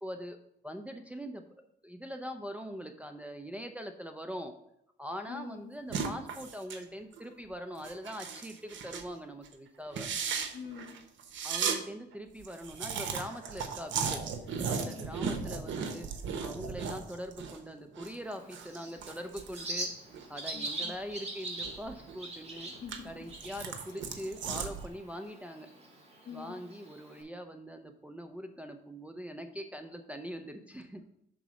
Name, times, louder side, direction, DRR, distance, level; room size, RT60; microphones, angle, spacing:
voice 1, 0.0-0.4 0.6-1.4 1.8-4.5 5.0-10.1 11.4-14.2 14.7-16.1 16.4-19.9 20.3-22.7 23.0-25.7 26.3-31.0, equal, 5° right, 4 dB, 0.6 m, -42 dB
voice 2, 5.3-5.7 10.5-10.9 14.8-15.1 20.5-21.0 22.7-23.2 23.8-24.0 26.2-26.6, left 6 dB, 55° left, 4 dB, 1.8 m, -46 dB
sound 1, 5.9-6.8 7.1-7.3 7.8-9.1 9.4-9.5 9.9-11.8 12.1-12.2 12.4-17.6 17.9-20.8 21.2-22.2 22.6-24.9, right 6 dB, 70° right, 1.0 m, -36 dB
Bird, 18.2-27.2, right 1 dB, 30° right, 2.2 m, -43 dB
6.2 x 4.0 x 6.2 m, 0.76 s
cardioid pair, 90°, 20 cm